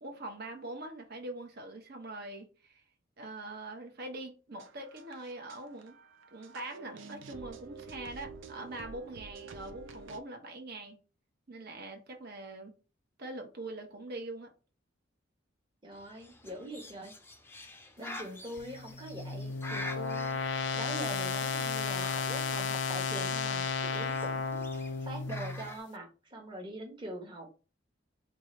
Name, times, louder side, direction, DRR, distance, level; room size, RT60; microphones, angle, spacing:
voice 1, 0.0-2.8 3.2-6.0 6.3-11.0 11.5-12.7 13.2-14.5, right 2 dB, 55° right, 0.9 m, -43 dB
sound 1, 4.5-10.2, right 4 dB, 90° right, 0.5 m, -49 dB
voice 2, 15.8-17.1 18.0-27.5, right 1 dB, 25° right, 1.0 m, -43 dB
Bird, 15.9-25.8, left 2 dB, 10° left, 0.5 m, -47 dB
sound 2, 18.6-25.7, left 5 dB, 70° left, 0.4 m, -33 dB
4.7 x 2.4 x 3.1 m
head